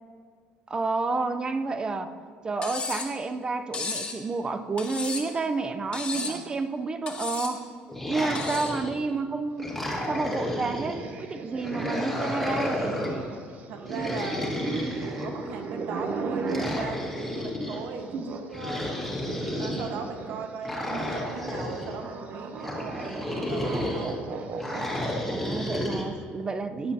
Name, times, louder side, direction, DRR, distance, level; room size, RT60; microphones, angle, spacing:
voice 1, 0.7-2.1 2.4-7.7 8.1-9.7 10.1-13.0 25.3-26.9, right 3 dB, 25° right, 9 dB, 0.5 m, -30 dB
Cutlery silverware, 2.6-3.1 3.7-4.2 4.8-5.4 5.9-6.4 7.1-7.6 8.3-8.8, left 4 dB, 30° left, 1.7 m, -34 dB
sound 1, 7.9-9.1 9.6-11.0 11.6-13.2 13.9-15.6 16.5-17.8 18.5-19.9 20.6-21.9 22.6-24.1 24.6-26.1, left 1 dB, 5° left, 1.9 m, -32 dB
sound 2, 9.8-18.5 18.8-25.6, right 4 dB, 45° right, 0.8 m, -37 dB
voice 2, 13.3-14.5 14.9-18.9 19.6-24.3, right 5 dB, 70° right, 4 dB, 1.4 m, -38 dB
15.0 x 9.9 x 2.8 m, 2.2 s
cardioid pair, 135°, 4 cm